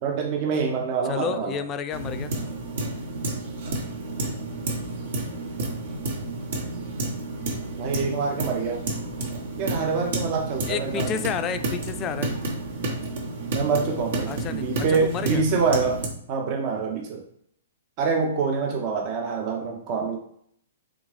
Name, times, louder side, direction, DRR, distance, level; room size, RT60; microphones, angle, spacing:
voice 1, 0.0-1.6 7.8-8.8 9.6-11.1 13.5-16.0 16.3-17.2 18.0-20.2, right 5 dB, 40° right, 1 dB, 0.7 m, -26 dB
voice 2, 1.1-2.3 10.7-12.3 14.3-15.4, left 7 dB, 25° left, 10 dB, 0.3 m, -31 dB
sound 1, 1.9-16.1, right 2 dB, 60° right, 1.1 m, -31 dB
3.6 x 3.6 x 3.2 m, 0.68 s
hypercardioid pair, 120°, 0 cm